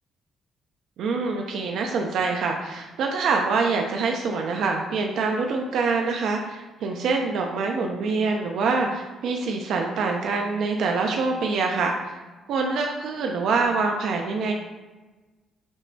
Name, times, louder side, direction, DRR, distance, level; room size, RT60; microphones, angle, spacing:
voice 1, 1.0-12.2 12.5-14.5, right 4 dB, 70° right, 2 dB, 0.5 m, -25 dB
6.2 x 3.1 x 2.7 m, 1.2 s
cardioid pair, 110°, 0 cm